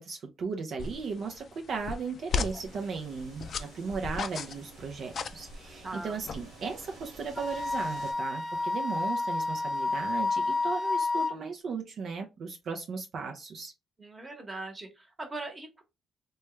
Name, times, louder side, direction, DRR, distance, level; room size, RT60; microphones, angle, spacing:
voice 1, 0.0-13.7, right 5 dB, 60° right, 3 dB, 0.5 m, -36 dB
sound 1, 0.8-7.0, left 5 dB, 55° left, 0.3 m, -38 dB
sound 2, 2.6-8.1, right 3 dB, 80° right, 1.2 m, -51 dB
voice 2, 5.8-6.2 14.0-15.8, right 2 dB, 25° right, 4 dB, 1.1 m, -40 dB
Wind instrument woodwind instrument, 7.4-11.3, left 3 dB, 25° left, 0.8 m, -30 dB
3.1 x 2.3 x 3.1 m, 0.25 s
cardioid pair, 90°, 0 cm